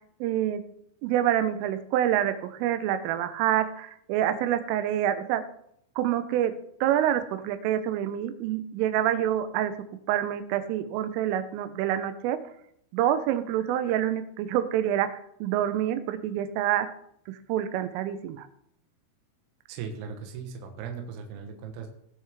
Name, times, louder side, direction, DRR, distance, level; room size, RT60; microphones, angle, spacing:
voice 1, 0.2-0.6 1.0-5.4 6.0-6.5 6.8-9.7 10.1-12.4 12.9-16.9 17.3-18.5, right 11 dB, 85° right, 10 dB, 3.2 m, -27 dB
voice 2, 19.7-21.9, right 6 dB, 70° right, 4 dB, 2.7 m, -38 dB
19.0 x 6.4 x 3.6 m, 0.72 s
omnidirectional pair, 5.9 m